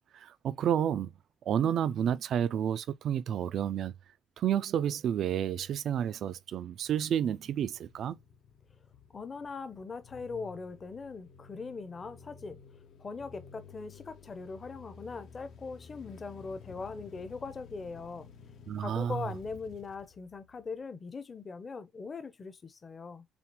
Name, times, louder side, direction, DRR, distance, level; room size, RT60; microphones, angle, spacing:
voice 1, 0.1-1.1 1.5-3.9 4.4-8.2 18.7-19.2, right 9 dB, 55° right, 0.4 m, -30 dB
sound 1, 6.5-20.8, left 6 dB, 60° left, 0.8 m, -53 dB
voice 2, 9.1-12.6 13.0-18.3 18.8-23.3, left 4 dB, 25° left, 0.7 m, -41 dB
7.0 x 2.5 x 2.9 m
cardioid pair, 160°, 0 cm